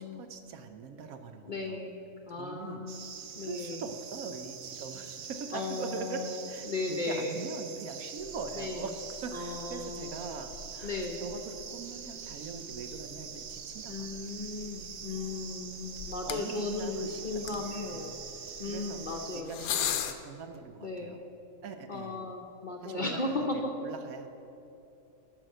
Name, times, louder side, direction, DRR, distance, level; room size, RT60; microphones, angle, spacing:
voice 1, 0.0-1.8 2.3-2.8 3.4-6.2 6.5-8.9 9.2-14.1 16.2-18.1 18.6-19.0 19.3-21.2 21.6-22.2 22.8-24.3, right 5 dB, 80° right, 7 dB, 1.1 m, -42 dB
voice 2, 1.5-1.9 2.2-3.1 3.4-3.8 5.5-7.3 8.6-8.9 9.3-10.2 10.8-11.2 13.9-18.2 18.6-19.7 20.8-21.2 21.9-23.7, left 3 dB, 45° left, 1 dB, 0.7 m, -36 dB
sound 1, 2.9-19.4, right 7 dB, 60° right, 0.9 m, -44 dB
sound 2, 8.2-20.1, left 8 dB, 85° left, 1.1 m, -42 dB
9.1 x 6.0 x 6.4 m, 2.9 s
omnidirectional pair, 1.5 m